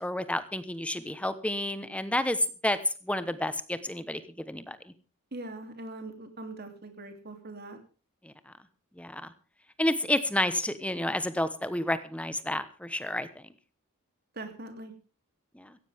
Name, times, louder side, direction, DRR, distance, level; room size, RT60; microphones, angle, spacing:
voice 1, 0.0-4.9 8.2-8.5 9.0-9.2 9.8-13.4 15.5-15.8, left 1 dB, 5° left, 12 dB, 1.0 m, -30 dB
voice 2, 5.3-7.8 14.3-14.9, right 2 dB, 45° right, 6 dB, 3.0 m, -41 dB
17.0 x 15.5 x 3.6 m, 0.35 s
head